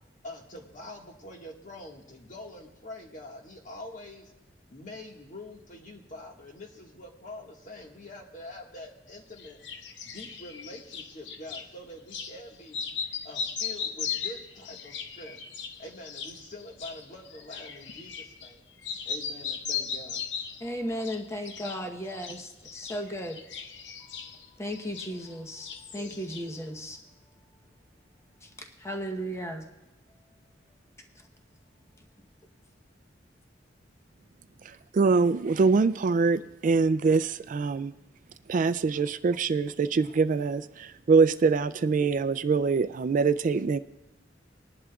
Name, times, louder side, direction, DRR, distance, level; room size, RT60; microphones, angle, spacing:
voice 1, 0.2-4.3 4.7-9.6 10.0-12.8 13.2-15.4 15.8-18.6 19.0-20.2, left 1 dB, 45° left, 1 dB, 1.7 m, -45 dB
sound 1, 9.4-11.7 12.1-12.4 12.7-18.6 18.8-20.7 21.0-21.8 22.1-25.3 25.6-26.6, left 6 dB, 70° left, 0.8 m, -37 dB
voice 2, 20.6-23.4 24.1-24.2 24.6-25.7 25.9-27.0 28.4-28.5 28.8-29.7, equal, 15° left, 2 dB, 0.9 m, -35 dB
voice 3, 34.9-37.9 38.5-43.8, right 4 dB, 45° right, 14 dB, 0.3 m, -24 dB
20.5 x 11.0 x 2.4 m, 1.0 s
head